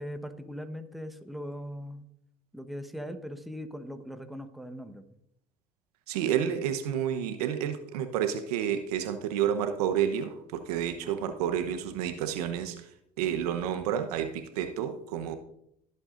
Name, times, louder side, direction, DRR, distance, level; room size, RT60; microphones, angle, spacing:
voice 1, 0.0-2.1 2.5-5.0, equal, ahead, 7 dB, 1.1 m, -40 dB
voice 2, 6.1-12.8 13.2-15.4, right 9 dB, 80° right, 8 dB, 1.0 m, -30 dB
17.5 x 8.1 x 2.6 m, 0.75 s
hypercardioid pair, 75°, 19 cm